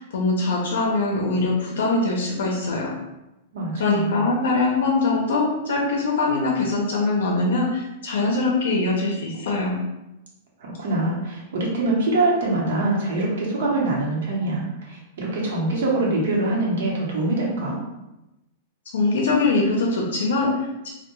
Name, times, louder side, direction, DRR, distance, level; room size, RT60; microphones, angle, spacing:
voice 1, 0.0-2.9 3.8-9.8 18.9-20.9, left 3 dB, 80° left, -1 dB, 0.5 m, -22 dB
voice 2, 3.5-4.3 10.6-17.8, right 2 dB, 65° right, -3 dB, 0.8 m, -24 dB
2.2 x 2.1 x 2.9 m, 0.95 s
supercardioid pair, 175°, 0 cm